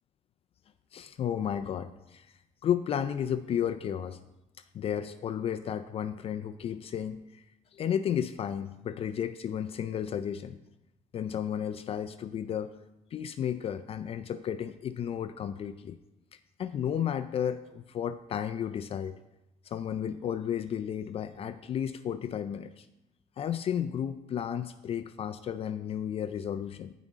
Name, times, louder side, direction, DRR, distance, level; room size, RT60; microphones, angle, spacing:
voice 1, 0.9-2.3 2.6-4.2 4.7-7.4 7.7-10.6 11.1-12.7 13.1-16.0 16.6-19.1 19.7-22.9 23.4-26.9, left 9 dB, 45° left, 12 dB, 0.4 m, -33 dB
13.5 x 5.1 x 3.6 m, 0.92 s
cardioid pair, 125°, 14 cm